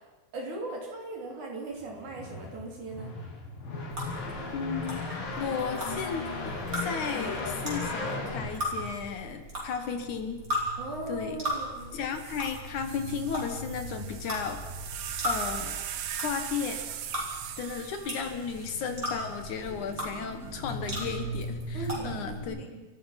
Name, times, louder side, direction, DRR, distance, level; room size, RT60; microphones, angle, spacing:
voice 1, 0.3-3.1 10.8-12.0 21.7-22.9, right 2 dB, 60° right, 0 dB, 4.6 m, -38 dB
sound 1, 1.8-9.4, left 3 dB, 85° left, 4.8 m, -36 dB
sound 2, 3.9-22.4, equal, 25° right, 6.3 m, -37 dB
voice 2, 4.5-6.2 6.8-10.4 11.1-11.4 11.9-14.6 15.2-15.8 16.2-16.9 17.6-22.7, left 6 dB, 65° left, 7 dB, 2.7 m, -34 dB
sound 3, 11.8-11.9 12.1-19.5 20.4-20.9, right 10 dB, 85° right, 3.0 m, -40 dB
30.0 x 14.5 x 5.9 m, 1.2 s
omnidirectional pair, 3.9 m